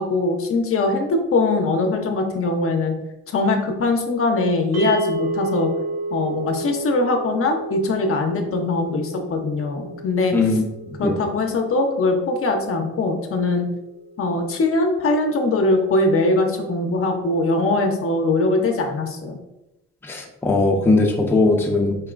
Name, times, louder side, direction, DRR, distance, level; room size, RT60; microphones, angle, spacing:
voice 1, 0.0-2.9 3.3-5.7 6.1-10.4 11.0-13.7 14.2-19.4, left 2 dB, 45° left, 4 dB, 0.6 m, -21 dB
sound 1, 4.7-15.0, right 2 dB, 60° right, 0.8 m, -32 dB
voice 2, 10.3-11.2 20.0-22.0, left 2 dB, 5° left, 0 dB, 0.6 m, -19 dB
4.5 x 2.9 x 2.4 m, 0.95 s
cardioid pair, 90°, 30 cm